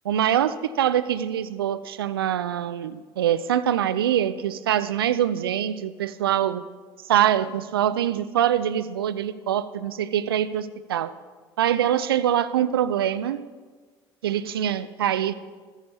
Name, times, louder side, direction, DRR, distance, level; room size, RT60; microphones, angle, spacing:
voice 1, 0.0-6.7 7.0-11.1 11.6-13.5 14.2-15.4, right 10 dB, 85° right, 0.4 m, -24 dB
14.5 x 13.5 x 2.8 m
figure-of-eight pair, 55°, 12 cm